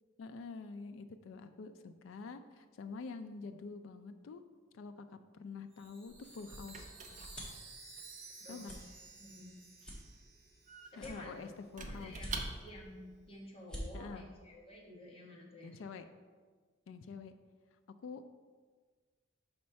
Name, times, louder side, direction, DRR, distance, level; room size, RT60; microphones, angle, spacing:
voice 1, 0.2-4.4 4.7-6.9 8.5-8.7 11.0-12.1 13.9-14.3 15.6-16.0 16.9-17.3 18.0-18.3, left 4 dB, 90° left, 9 dB, 0.4 m, -47 dB
Chime, 5.7-11.3, right 3 dB, 60° right, 1.4 m, -55 dB
Squeak / Wood, 5.8-13.0, right 3 dB, 40° right, 0.6 m, -48 dB
sound 1, 6.0-7.7 8.1-8.3 8.6-8.8 9.3-9.4 9.8-10.6 10.9-11.6 12.1-12.7 13.2-13.3 13.5-13.8, equal, 5° left, 1.3 m, -46 dB
voice 2, 8.4-8.8 9.2-9.6 11.0-11.5 11.8-15.8, left 1 dB, 30° left, -2 dB, 1.2 m, -51 dB
4.3 x 4.2 x 5.7 m, 1.5 s
head